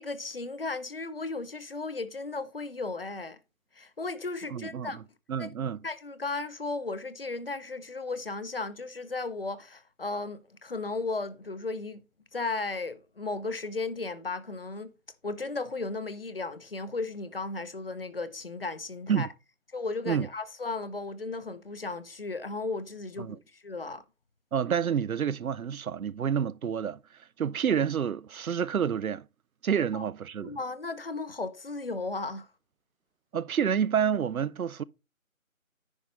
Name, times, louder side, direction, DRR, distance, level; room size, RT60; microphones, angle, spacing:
voice 1, 0.0-3.4 3.8-5.0 5.4-5.5 5.8-12.0 12.3-14.9 15.2-19.3 19.7-24.0 29.9-30.1 30.4-32.5, left 3 dB, 45° left, 0.8 m, -35 dB
voice 2, 4.5-5.0 5.3-5.8 19.1-19.3 20.1-20.3 23.2-23.4 24.5-27.0 27.4-29.2 29.6-30.6 33.3-34.8, right 8 dB, 80° right, 0.6 m, -28 dB
10.0 x 5.1 x 4.2 m
figure-of-eight pair, 160°, 42 cm